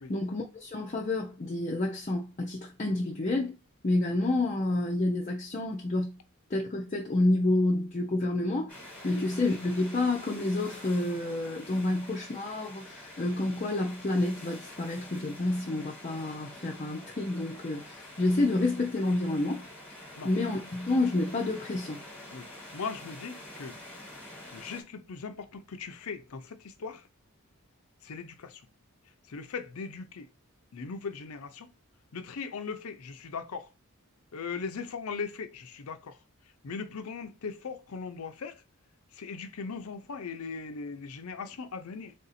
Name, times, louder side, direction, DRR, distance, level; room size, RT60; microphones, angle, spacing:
voice 1, 0.1-3.6 3.8-6.2 6.5-8.7 9.0-19.6 20.2-22.0, left 2 dB, 35° left, 0.5 m, -29 dB
sound 1, 8.7-24.8, left 1 dB, 5° left, 1.3 m, -47 dB
voice 2, 22.3-23.8 24.5-27.1 28.0-28.6 29.3-30.3 30.7-31.7 32.1-33.7 34.3-36.2 36.6-38.6 39.1-42.1, left 5 dB, 80° left, 0.6 m, -39 dB
3.5 x 2.7 x 4.1 m
head